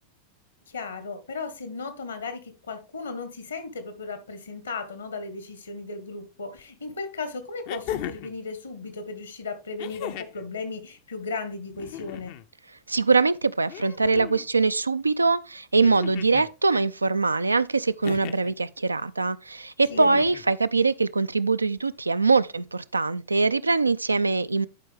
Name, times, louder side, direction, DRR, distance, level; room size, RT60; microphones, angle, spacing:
voice 1, 0.7-2.4 2.7-12.3 19.9-20.2, left 4 dB, 75° left, 1.4 m, -35 dB
sound 1, 6.6-6.7 7.7-8.4 9.8-10.5 11.7-12.5 13.7-14.5 15.8-16.5 18.0-18.5 19.9-20.5 21.8-21.9, left 12 dB, 45° left, 0.5 m, -37 dB
voice 2, 12.9-24.7, right 3 dB, 80° right, 0.3 m, -23 dB
11.0 x 4.7 x 3.4 m
figure-of-eight pair, 90°, 0 cm